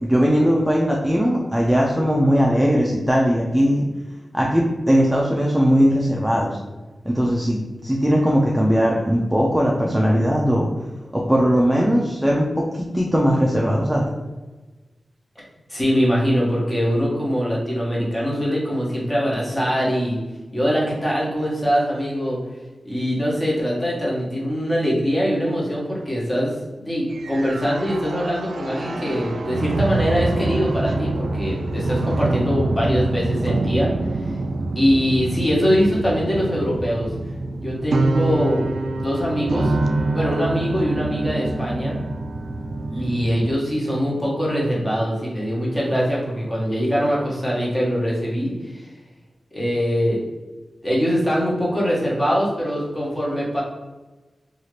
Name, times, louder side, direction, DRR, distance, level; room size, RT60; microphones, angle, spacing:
voice 1, 0.0-3.8 4.3-6.6 7.0-10.7 11.1-14.0, equal, 5° right, -3 dB, 0.4 m, -19 dB
voice 2, 15.7-20.2 20.5-22.4 22.8-34.3 34.7-37.1 37.6-39.7 40.1-42.0 42.9-48.9 49.5-50.2 50.8-53.6, equal, 20° left, -5 dB, 1.0 m, -22 dB
sound 1, 27.1-43.5, right 2 dB, 90° right, 0.3 m, -25 dB
2.7 x 2.4 x 3.1 m, 1.2 s
wide cardioid pair, 125°, 0 cm